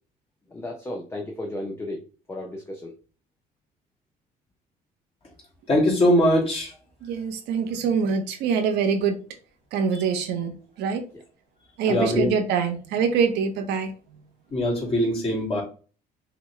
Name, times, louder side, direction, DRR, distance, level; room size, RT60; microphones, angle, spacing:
voice 1, 0.5-2.0 2.3-2.9 11.1-11.2 11.8-12.2, left 1 dB, 15° left, 1 dB, 0.7 m, -33 dB
voice 2, 5.7-6.7 9.9-10.0 11.9-12.3 14.5-15.6, equal, 35° left, -2 dB, 2.4 m, -21 dB
voice 3, 7.0-9.2 9.7-11.0 11.8-13.9, right 6 dB, 85° right, 5 dB, 0.9 m, -24 dB
6.0 x 2.3 x 3.1 m, 0.37 s
cardioid pair, 110°, 17 cm